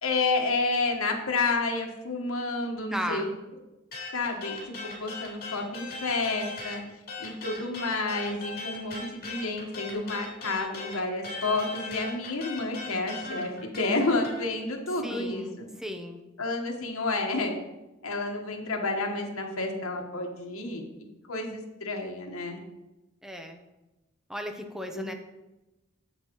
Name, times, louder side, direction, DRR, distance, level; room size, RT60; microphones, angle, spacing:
voice 1, 0.0-3.3 4.1-6.8 7.2-15.7 16.4-17.6 18.0-20.8 21.3-22.6 24.9-25.0, left 3 dB, 75° left, 1 dB, 1.3 m, -30 dB
voice 2, 2.9-3.3 15.0-16.2 23.2-23.6 24.3-25.1, equal, ahead, 5 dB, 0.7 m, -35 dB
sound 1, 3.9-6.8 7.1-14.4, left 2 dB, 45° left, 2.7 m, -38 dB
8.1 x 7.4 x 3.0 m, 1.0 s
head